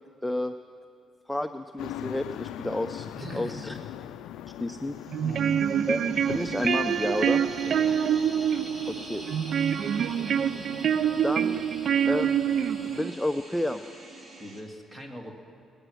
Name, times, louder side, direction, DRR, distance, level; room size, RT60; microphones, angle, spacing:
voice 1, 0.2-0.5 1.3-3.8 4.5-5.0 5.9-7.4 8.9-9.2 11.2-11.6 12.1-12.4 12.9-13.8, left 1 dB, 5° left, 8 dB, 0.4 m, -30 dB
sound 1, 1.8-13.0, left 12 dB, 90° left, 0.3 m, -42 dB
voice 2, 3.1-3.6 5.2-5.6 7.6-8.0 14.4-15.3, equal, 15° right, 2 dB, 2.0 m, -41 dB
sound 2, 4.9-14.6, right 1 dB, 40° right, 2.3 m, -45 dB
sound 3, 5.1-13.1, right 8 dB, 60° right, 0.3 m, -26 dB
20.0 x 9.0 x 6.3 m, 2.7 s
cardioid pair, 90°, 0 cm